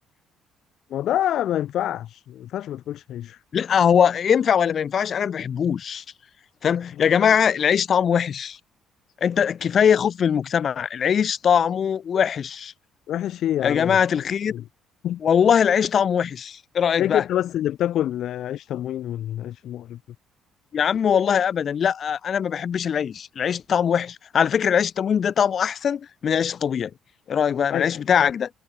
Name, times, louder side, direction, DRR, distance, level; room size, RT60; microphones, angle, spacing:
voice 1, 0.9-3.4 13.1-14.6 15.0-15.2 17.0-20.0 27.7-28.0, left 12 dB, 55° left, 2.7 m, -27 dB
voice 2, 3.5-6.0 6.6-8.6 9.2-12.7 13.6-14.5 15.2-17.2 20.7-26.9 27.3-28.5, left 8 dB, 35° left, 0.6 m, -21 dB
cardioid pair, 165°, 0 cm